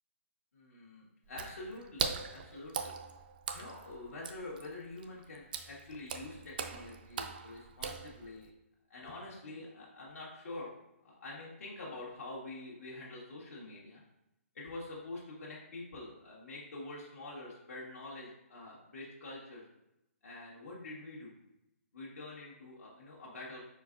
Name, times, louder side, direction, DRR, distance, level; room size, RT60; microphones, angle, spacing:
voice 1, 0.5-2.9 3.5-8.5 8.9-10.7 11.0-14.0 14.5-19.6 20.2-21.3 21.9-23.6, left 2 dB, 80° left, -6 dB, 1.3 m, -46 dB
Water / Splash splatter, 1.3-8.5, right 6 dB, 40° right, 0.3 m, -41 dB
4.5 x 4.5 x 2.5 m, 0.88 s
hypercardioid pair, 170°, 8 cm